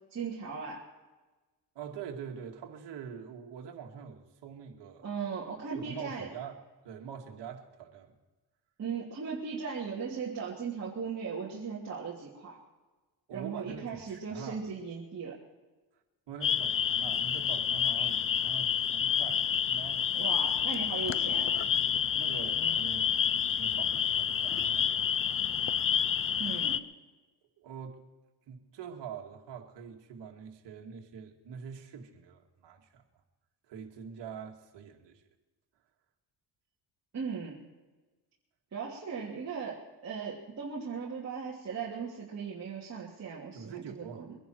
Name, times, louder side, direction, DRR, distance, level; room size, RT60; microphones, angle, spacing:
voice 1, 0.1-0.9 5.0-6.3 8.8-12.6 13.3-15.4 20.1-21.6 26.4-26.9 37.1-37.6 38.7-44.4, right 5 dB, 40° right, -6 dB, 3.1 m, -38 dB
voice 2, 1.8-5.1 5.7-6.6 6.8-8.1 13.3-14.6 16.3-20.1 22.1-25.4 27.6-28.0 28.5-33.0 33.7-35.2 43.5-44.3, right 7 dB, 75° right, 3 dB, 2.3 m, -44 dB
sound 1, 16.4-26.8, left 8 dB, 30° left, 0.6 m, -29 dB
23.5 x 11.0 x 4.6 m, 1.2 s
cardioid pair, 115°, 42 cm